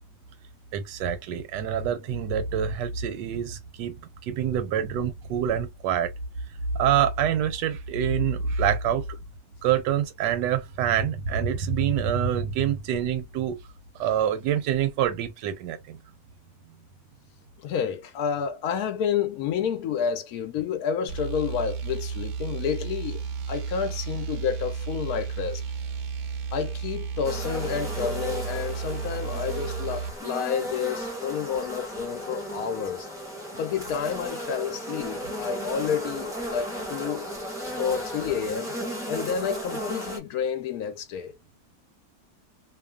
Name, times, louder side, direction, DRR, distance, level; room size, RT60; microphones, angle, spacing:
voice 1, 0.7-6.1 6.7-9.0 9.6-13.6 14.0-16.0, right 8 dB, 85° right, 1.2 m, -26 dB
voice 2, 17.6-25.6 26.5-33.1 33.5-37.3 37.8-38.7 39.1-41.4, left 7 dB, 70° left, 1.0 m, -30 dB
sound 1, 21.1-30.2, right 6 dB, 65° right, 0.7 m, -33 dB
sound 2, 27.2-40.2, equal, 5° right, 0.5 m, -35 dB
2.8 x 2.3 x 2.2 m
omnidirectional pair, 1.8 m